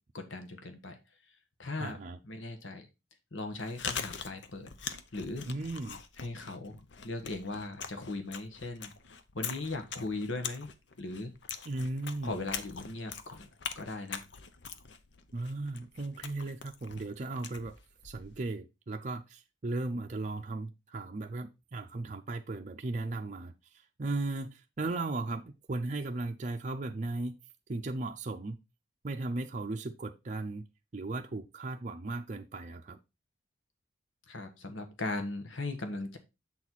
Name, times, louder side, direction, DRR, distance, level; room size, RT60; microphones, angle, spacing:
voice 1, 0.1-1.0 1.6-2.9 3.3-4.7 5.1-5.5 6.2-8.9 9.3-10.7 11.0-11.3 12.2-13.5 13.7-14.3 34.3-36.2, left 2 dB, 80° left, 1.3 m, -38 dB
voice 2, 1.8-2.2 5.5-6.0 11.7-12.4 15.3-17.8 18.0-27.4 27.7-28.6 29.0-30.6 30.9-33.0, right 2 dB, 40° right, 0.5 m, -36 dB
Chewing mastication, 3.4-18.5, left 7 dB, 65° left, 0.7 m, -43 dB
7.6 x 4.1 x 4.5 m
head